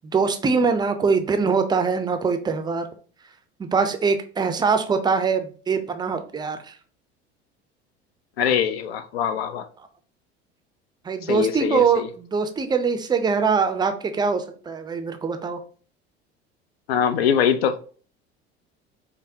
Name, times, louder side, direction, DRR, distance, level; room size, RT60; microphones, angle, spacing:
voice 1, 0.0-2.9 3.6-6.8 8.4-8.5 11.0-15.6, right 5 dB, 15° right, 0.4 m, -23 dB
voice 2, 8.4-9.7 11.2-12.1 16.9-17.8, left 8 dB, 65° left, 0.5 m, -23 dB
5.2 x 2.0 x 2.6 m
figure-of-eight pair, 65°, 33 cm